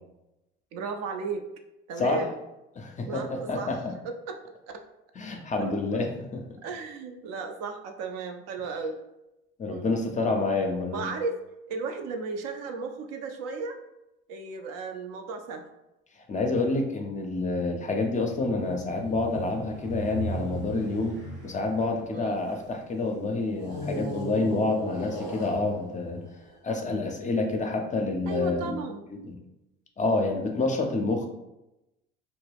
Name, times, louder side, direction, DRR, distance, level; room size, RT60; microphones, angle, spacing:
voice 1, 0.7-1.5 1.9-2.4 3.0-3.7 4.0-4.4 4.7-4.8 5.6-5.7 6.6-9.0 9.7-10.0 10.9-11.4 11.7-13.8 14.3-15.7 22.1-22.4 28.3-29.0, right 4 dB, 55° right, 5 dB, 0.4 m, -35 dB
voice 2, 2.8-3.8 5.2-6.4 9.6-11.1 16.3-26.3 26.6-28.8 29.1-29.4 30.0-31.3, left 3 dB, 25° left, 3 dB, 0.5 m, -28 dB
sound 1, 18.1-22.8 23.5-26.9, right 1 dB, 75° right, 1.0 m, -38 dB
2.2 x 2.0 x 3.3 m, 0.93 s
hypercardioid pair, 55°, 30 cm